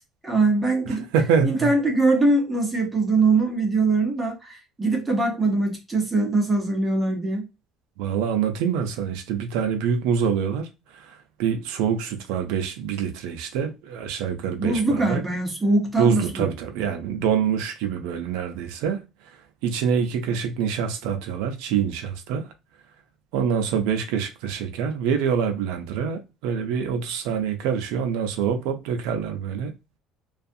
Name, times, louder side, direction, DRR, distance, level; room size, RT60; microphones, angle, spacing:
voice 1, 0.2-1.0 1.4-7.5 14.6-16.5, right 3 dB, 15° right, 1.0 m, -22 dB
voice 2, 0.9-1.7 8.0-15.2 16.0-19.0 19.6-22.5 23.3-29.7, right 7 dB, 85° right, 0.5 m, -25 dB
2.4 x 2.3 x 2.6 m
cardioid pair, 115°, 0 cm